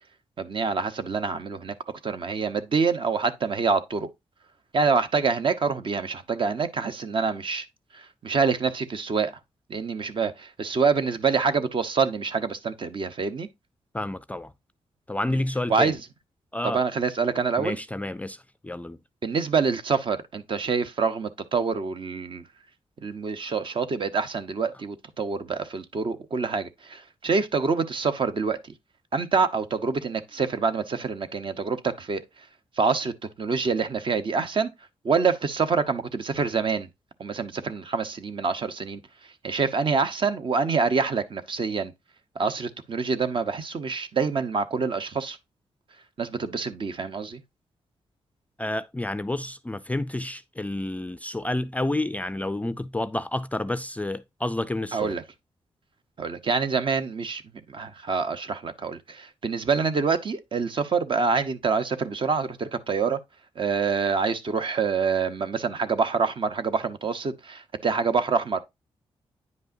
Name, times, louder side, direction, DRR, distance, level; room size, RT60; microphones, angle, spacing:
voice 1, 0.4-1.7 2.0-4.1 4.7-7.6 7.9-9.3 9.7-13.5 15.7-16.0 16.6-17.8 19.2-22.4 23.0-28.6 29.1-32.2 32.8-33.1 33.4-34.7 35.0-36.9 37.2-39.0 39.4-41.9 42.4-45.4 46.2-47.4 54.9-55.2 56.2-57.4 57.7-63.2 63.6-68.6, right 5 dB, 50° right, 0.9 m, -26 dB
voice 2, 13.9-14.5 15.1-16.0 16.5-16.8 17.6-19.0 48.6-55.2, left 1 dB, 15° left, 0.4 m, -30 dB
9.4 x 5.4 x 2.6 m
cardioid pair, 100°, 11 cm